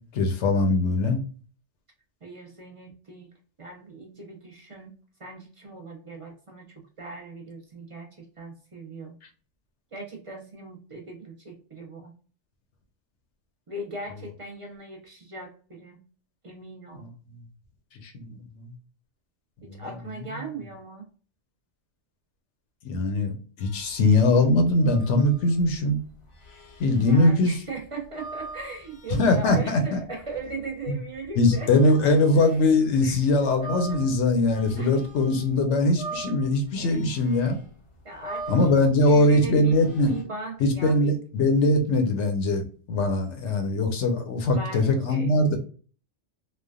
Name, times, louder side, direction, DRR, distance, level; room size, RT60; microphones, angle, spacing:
voice 1, 0.1-1.2 16.9-17.1 18.0-18.7 19.7-19.9 22.8-26.0 26.8-27.6 29.2-30.0 30.9-31.0 31.4-37.6 38.5-40.1 40.6-45.6, left 2 dB, 80° left, 5 dB, 1.0 m, -22 dB
voice 2, 2.2-3.3 3.6-4.9 5.2-9.1 9.9-12.1 13.7-16.0 16.4-17.1 19.6-21.1 27.0-32.2 33.0-33.2 34.8-35.0 36.8-37.0 38.0-38.5 39.0-41.2 44.0-44.1 44.4-45.3, right 3 dB, 40° right, 1 dB, 0.5 m, -38 dB
sound 1, 23.6-32.7 33.1-35.5 35.8-40.2, right 3 dB, 40° left, 0.5 m, -43 dB
3.2 x 2.1 x 2.3 m, 0.40 s
omnidirectional pair, 1.2 m